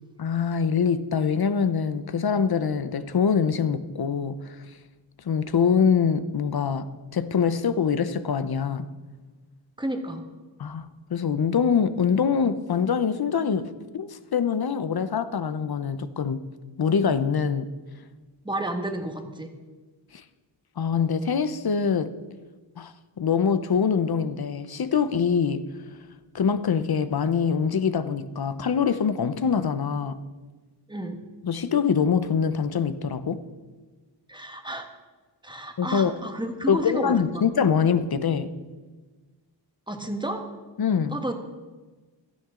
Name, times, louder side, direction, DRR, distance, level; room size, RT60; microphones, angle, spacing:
voice 1, 0.2-4.8 5.2-6.9 7.1-8.9 10.6-16.4 16.8-17.7 20.1-20.2 20.8-22.1 22.8-25.7 26.3-30.2 31.4-33.4 35.8-36.1 36.7-38.5 40.8-41.2, left 6 dB, 55° left, 0.8 m, -24 dB
voice 2, 9.8-10.2 18.4-19.5 30.9-31.2 34.3-34.9 35.4-37.4 39.9-40.5 41.1-41.3, right 1 dB, 10° right, 1.6 m, -31 dB
16.5 x 12.5 x 3.8 m
wide cardioid pair, 100°, 45 cm